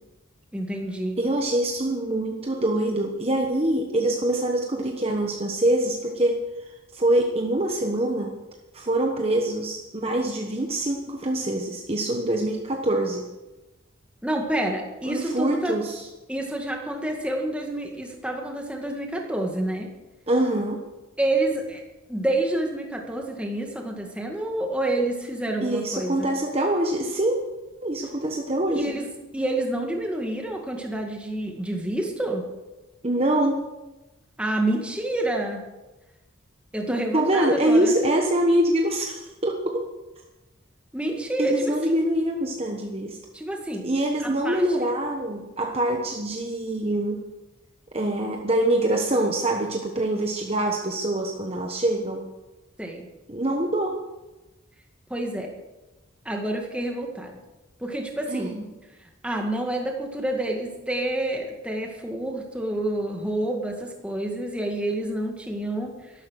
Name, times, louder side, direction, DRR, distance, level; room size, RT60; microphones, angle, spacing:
voice 1, 0.5-1.3 14.2-15.8 16.3-19.9 21.2-21.8 22.1-26.3 28.7-29.1 29.3-32.5 34.4-35.7 36.7-37.9 40.9-41.9 43.3-43.9 44.2-44.6 52.8-53.1 55.1-55.6 56.3-57.3 57.8-58.5 59.0-66.1, right 1 dB, 5° right, 1 dB, 2.0 m, -28 dB
voice 2, 1.2-8.3 8.7-13.2 15.0-16.1 20.3-20.8 25.6-27.4 27.8-28.9 33.0-33.6 36.9-39.9 41.4-43.2 43.8-47.2 47.9-52.2 53.3-54.0 58.3-58.6, right 1 dB, 30° right, 2 dB, 1.1 m, -24 dB
13.0 x 12.0 x 6.4 m, 1.1 s
head